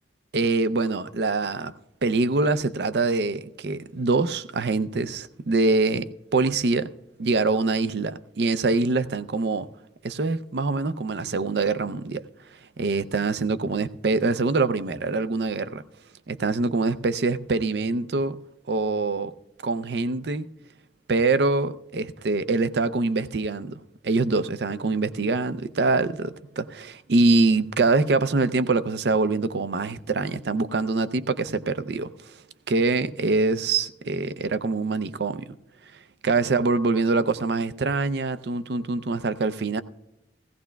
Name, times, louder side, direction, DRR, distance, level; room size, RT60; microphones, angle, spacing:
voice 1, 0.3-1.7 2.0-6.9 7.2-9.7 10.0-12.2 12.8-15.8 16.3-18.4 18.7-19.3 19.6-20.5 21.1-32.3 32.7-35.5 36.2-39.8, right 3 dB, 70° right, 0.5 m, -24 dB
17.0 x 16.0 x 2.3 m
head